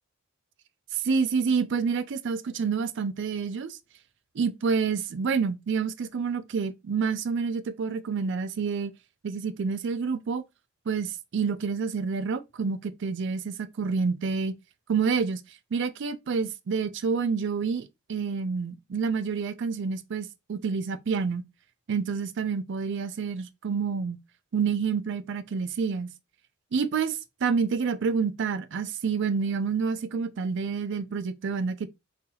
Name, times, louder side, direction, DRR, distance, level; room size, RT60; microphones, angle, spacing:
voice 1, 0.9-3.8 4.3-8.9 9.2-10.4 10.9-14.6 14.9-21.4 21.9-24.2 24.5-26.1 26.7-31.9, right 5 dB, 60° right, 0.4 m, -28 dB
3.9 x 2.8 x 2.7 m
head